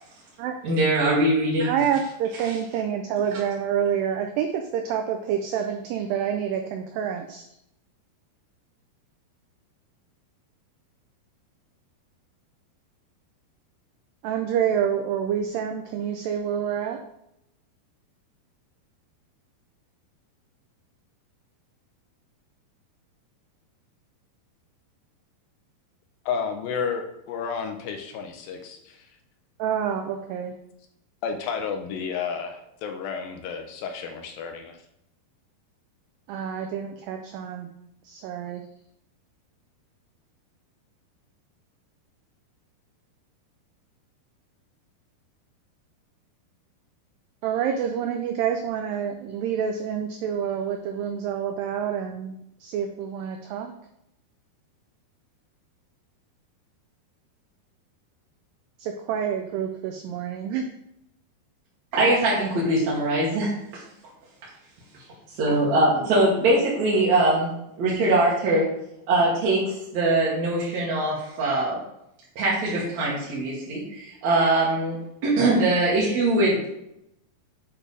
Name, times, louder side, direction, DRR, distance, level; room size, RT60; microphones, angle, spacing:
voice 1, 0.6-1.7 61.9-63.5 65.3-67.5 67.8-68.7 69.1-71.8 72.4-75.0 75.2-76.7, right 2 dB, 60° right, -6 dB, 2.2 m, -22 dB
voice 2, 1.7-7.4 14.2-17.0 29.6-30.5 36.3-37.7 38.0-38.6 47.4-52.3 52.6-53.7 58.8-60.7, right 8 dB, 90° right, 5 dB, 2.0 m, -27 dB
voice 3, 26.3-29.2 31.2-34.8, left 6 dB, 80° left, 5 dB, 2.2 m, -31 dB
8.8 x 3.3 x 4.9 m, 0.80 s
omnidirectional pair, 4.6 m